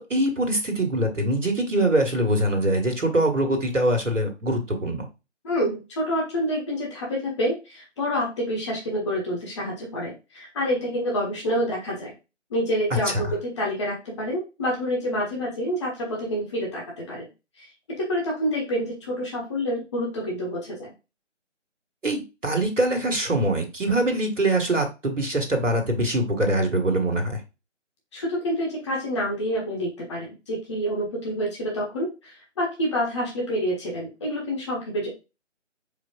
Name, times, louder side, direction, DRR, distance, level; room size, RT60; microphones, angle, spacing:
voice 1, 0.1-5.1 12.9-13.3 22.0-27.4, right 1 dB, 80° right, 4 dB, 1.5 m, -23 dB
voice 2, 5.4-12.1 12.5-17.2 17.6-17.7 18.0-20.9 28.1-35.1, equal, 25° left, -3 dB, 1.4 m, -28 dB
4.7 x 4.4 x 2.3 m, 0.27 s
figure-of-eight pair, 155°, 37 cm